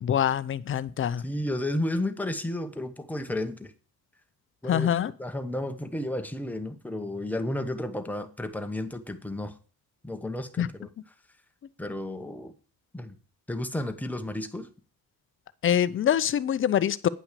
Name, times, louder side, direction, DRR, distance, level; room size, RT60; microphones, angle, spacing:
voice 1, 0.0-1.2 4.7-5.1 10.6-10.7 15.6-17.1, left 9 dB, 40° left, 16 dB, 0.6 m, -24 dB
voice 2, 1.2-3.7 4.6-4.9 5.2-9.5 10.0-10.9 11.8-12.5 12.9-13.2 13.5-14.7, left 1 dB, 5° left, 6 dB, 1.0 m, -32 dB
9.6 x 6.0 x 6.7 m, 0.39 s
cardioid pair, 140°, 33 cm